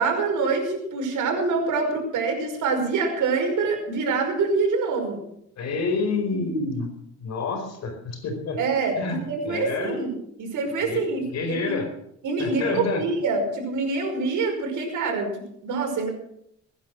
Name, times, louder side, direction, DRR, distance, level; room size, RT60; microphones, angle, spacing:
voice 1, 0.0-5.2 8.6-11.8 12.2-16.1, right 4 dB, 70° right, 3 dB, 5.3 m, -25 dB
voice 2, 5.6-6.9 7.2-8.6 9.0-10.0 10.8-11.9 12.4-13.0, left 3 dB, 55° left, 5 dB, 4.7 m, -28 dB
21.0 x 10.5 x 6.3 m, 0.74 s
cardioid pair, 135°, 32 cm